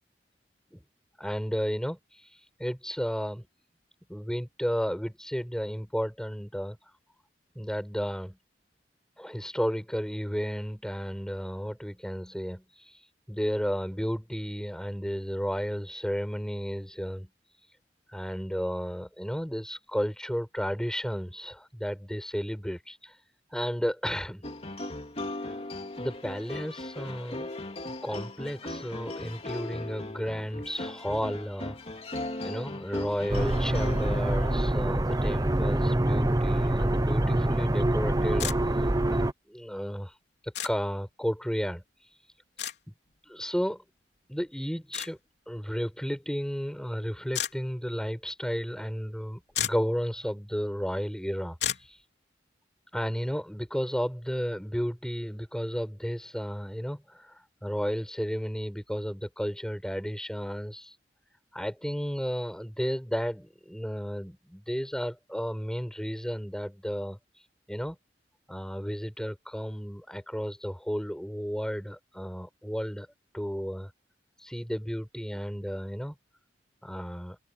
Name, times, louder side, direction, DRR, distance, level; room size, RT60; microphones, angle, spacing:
voice 1, 1.2-3.5 4.1-7.0 7.6-8.4 9.2-17.8 18.1-23.2 23.5-24.4 26.0-27.5 27.9-31.8 32.4-39.2 39.5-40.2 40.4-42.3 43.2-43.8 44.3-45.2 45.5-52.1 52.9-61.0 61.5-68.0 68.5-73.1 73.3-73.9 74.4-76.1 76.8-77.4, equal, 5° left, 5.1 m, -33 dB
sound 1, 24.4-34.9, left 1 dB, 35° left, 3.1 m, -38 dB
sound 2, 33.3-39.3, right 1 dB, 20° right, 0.8 m, -25 dB
sound 3, 38.4-38.6 40.5-40.7 42.6-42.8 44.9-45.1 47.3-47.5 49.2-49.3 49.5-49.9 51.6-51.9, left 10 dB, 75° left, 3.2 m, -31 dB
open air
head